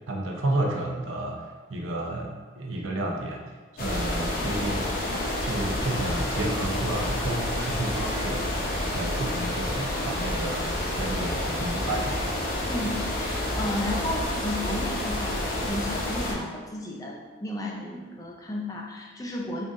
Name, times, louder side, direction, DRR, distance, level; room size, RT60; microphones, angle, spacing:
voice 1, 0.1-8.5 8.9-12.2, right 1 dB, 85° right, 0 dB, 0.6 m, -31 dB
sound 1, 3.8-16.3, left 1 dB, 45° left, 0.7 m, -29 dB
voice 2, 12.7-19.6, left 1 dB, 20° left, -1 dB, 0.4 m, -33 dB
3.8 x 3.7 x 2.5 m, 1.4 s
head